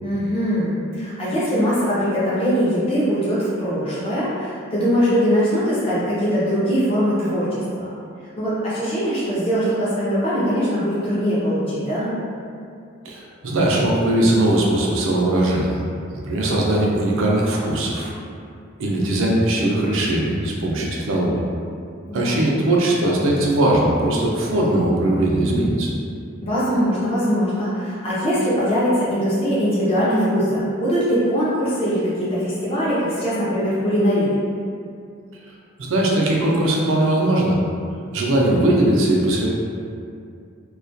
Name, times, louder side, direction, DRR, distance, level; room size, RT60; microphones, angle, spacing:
voice 1, 0.0-7.9 8.4-12.2 22.1-22.4 26.4-34.4, equal, 25° left, -10 dB, 0.5 m, -21 dB
voice 2, 13.0-15.8 16.1-18.1 18.8-21.4 22.1-25.9 35.8-37.6 38.1-39.5, right 1 dB, 75° right, -2 dB, 0.4 m, -20 dB
2.3 x 2.2 x 2.5 m, 2.4 s
head